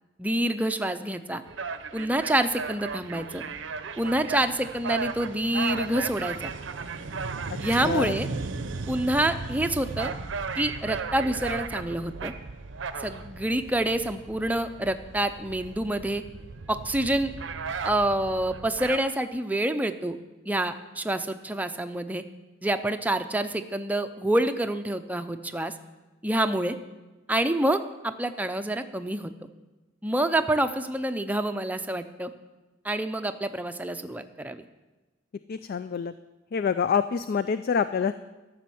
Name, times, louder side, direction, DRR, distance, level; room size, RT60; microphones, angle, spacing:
voice 1, 0.2-1.4 1.9-3.4 4.0-6.5 7.6-8.3 8.9-10.1 10.6-12.3 13.0-16.2 16.7-17.3 17.8-20.2 20.5-22.2 22.6-25.7 26.2-26.8 27.3-29.3 30.0-32.3 32.8-34.6, right 1 dB, 10° right, 7 dB, 0.5 m, -27 dB
sound 1, 1.5-19.0, right 4 dB, 75° right, 0.6 m, -35 dB
voice 2, 7.8-8.1 35.5-36.1 36.5-38.1, left 6 dB, 50° left, 12 dB, 0.3 m, -26 dB
12.5 x 6.3 x 7.7 m, 1.1 s
head